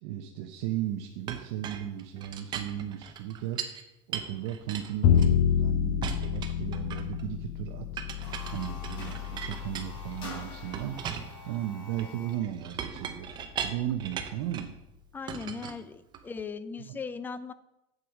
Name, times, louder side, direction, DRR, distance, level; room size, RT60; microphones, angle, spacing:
voice 1, 0.0-3.6 4.1-7.9 8.5-11.0 11.5-14.8 16.9-17.0, right 12 dB, 60° right, 4 dB, 0.8 m, -35 dB
Chink clink, 1.3-3.8 4.1-5.6 6.0-7.2 8.0-10.3 10.7-14.8 15.3-16.4, right 8 dB, 30° right, 0.8 m, -39 dB
Bowed string instrument, 5.0-11.2, left 8 dB, 45° left, 0.7 m, -28 dB
sound 1, 8.0-12.5, left 2 dB, 30° left, 3.8 m, -46 dB
voice 2, 15.1-17.5, left 5 dB, 10° left, 14 dB, 0.4 m, -38 dB
7.9 x 7.6 x 5.0 m, 0.89 s
supercardioid pair, 150°, 16 cm